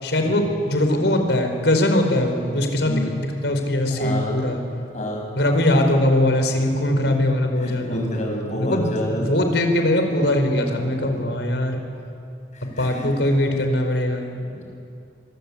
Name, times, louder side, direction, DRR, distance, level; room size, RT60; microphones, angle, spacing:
voice 1, 0.0-4.6 5.4-8.1 8.5-11.8 12.8-14.3, left 1 dB, 85° left, 5 dB, 4.7 m, -21 dB
voice 2, 3.9-4.4 4.9-5.2 6.9-7.0 7.6-9.2 12.8-13.0 14.5-14.6, left 1 dB, 40° left, 0 dB, 7.4 m, -28 dB
26.0 x 24.5 x 8.6 m, 2.5 s
head